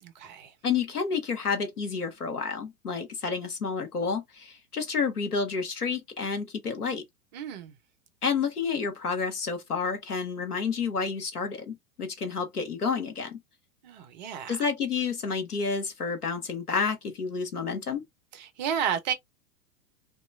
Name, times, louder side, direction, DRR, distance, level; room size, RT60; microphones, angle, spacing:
voice 1, 0.0-0.5 7.3-7.7 13.8-14.7 18.3-19.1, right 8 dB, 30° right, 0.5 m, -32 dB
voice 2, 0.6-7.0 8.2-13.4 14.5-18.0, left 5 dB, 85° left, 0.8 m, -30 dB
2.9 x 2.3 x 2.2 m
figure-of-eight pair, 100°, 45 cm